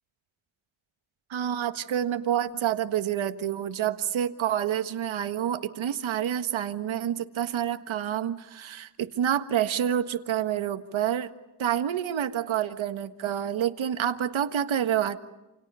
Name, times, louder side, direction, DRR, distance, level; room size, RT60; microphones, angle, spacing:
voice 1, 1.3-11.3 11.6-15.2, right 10 dB, 85° right, 9 dB, 1.6 m, -28 dB
29.0 x 28.5 x 5.6 m, 1.0 s
wide cardioid pair, 110°, 46 cm